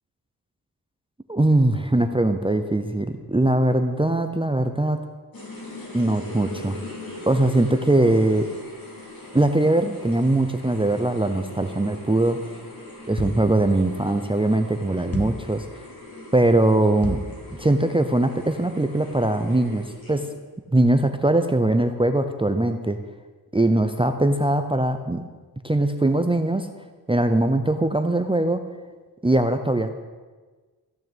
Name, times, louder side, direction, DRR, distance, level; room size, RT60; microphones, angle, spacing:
voice 1, 1.3-5.0 5.9-6.8 7.2-8.5 9.3-12.4 13.1-15.8 16.3-17.2 17.6-20.3 20.7-23.0 23.5-25.2 25.6-26.7 27.1-28.6 29.2-30.0, right 1 dB, 15° right, 8 dB, 0.6 m, -21 dB
sound 1, 5.3-20.4, left 1 dB, 60° left, 4.4 m, -40 dB
sound 2, 13.2-13.6 15.1-15.5 17.0-17.4, left 2 dB, 35° left, 1.6 m, -31 dB
14.5 x 6.5 x 8.9 m, 1.4 s
wide cardioid pair, 115°, 40 cm